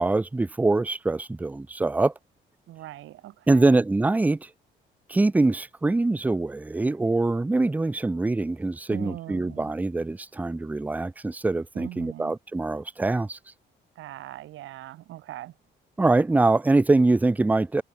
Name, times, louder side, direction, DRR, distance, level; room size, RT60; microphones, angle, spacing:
voice 1, 0.0-2.1 3.5-4.5 5.1-13.4 16.0-17.8, right 2 dB, 10° right, 0.4 m, -23 dB
voice 2, 2.7-3.8 8.9-9.7 11.7-12.3 13.9-15.5, right 14 dB, 85° right, 1.7 m, -40 dB
cardioid pair, 90°, 20 cm